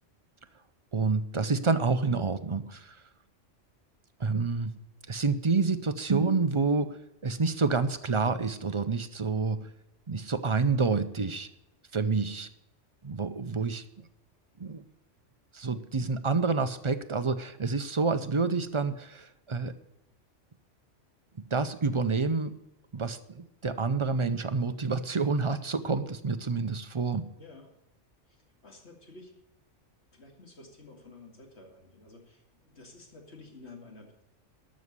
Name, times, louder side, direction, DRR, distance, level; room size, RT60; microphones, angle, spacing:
voice 1, 0.9-3.0 4.2-4.8 5.1-9.7 10.1-11.5 11.9-12.5 13.0-13.8 14.6-14.8 15.5-19.7 21.4-22.6 22.9-27.3, right 4 dB, 35° right, 10 dB, 0.5 m, -28 dB
voice 2, 27.4-27.7 28.3-29.3 30.1-34.2, left 3 dB, 60° left, 2 dB, 2.6 m, -51 dB
12.5 x 6.4 x 8.1 m, 0.87 s
omnidirectional pair, 1.3 m